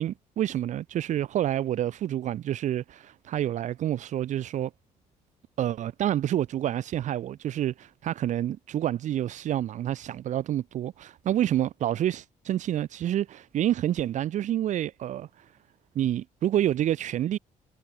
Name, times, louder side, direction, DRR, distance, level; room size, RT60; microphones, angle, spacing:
voice 1, 0.0-4.7 5.6-15.5 15.9-17.4, right 11 dB, 65° right, 1.2 m, -28 dB
cardioid pair, 110°, 13 cm